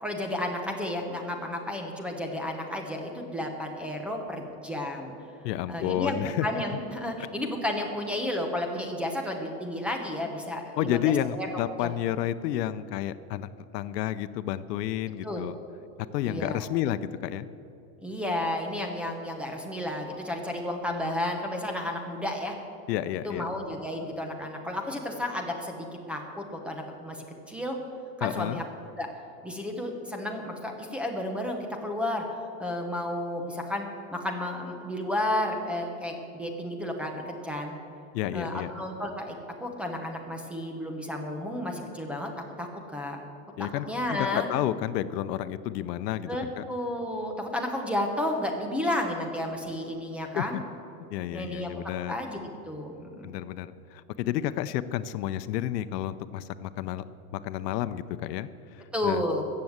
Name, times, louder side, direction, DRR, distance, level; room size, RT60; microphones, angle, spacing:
voice 1, 0.0-5.1 5.7-11.5 11.8-11.9 15.2-15.5 16.2-16.6 18.0-22.5 23.2-27.8 28.2-28.6 29.0-29.1 29.4-32.2 32.6-37.8 38.3-42.3 42.6-43.2 43.6-44.5 46.3-50.6 51.3-51.7 52.1-53.3 58.9-59.4, left 1 dB, ahead, 2 dB, 0.9 m, -32 dB
voice 2, 5.4-6.5 10.8-15.5 16.1-17.5 22.9-23.5 28.2-28.6 38.1-38.7 43.6-46.6 50.3-50.6 51.1-52.1 53.2-57.0 57.3-59.2, left 12 dB, 85° left, 14 dB, 0.7 m, -31 dB
14.5 x 7.7 x 7.9 m, 2.8 s
supercardioid pair, 165°, 47 cm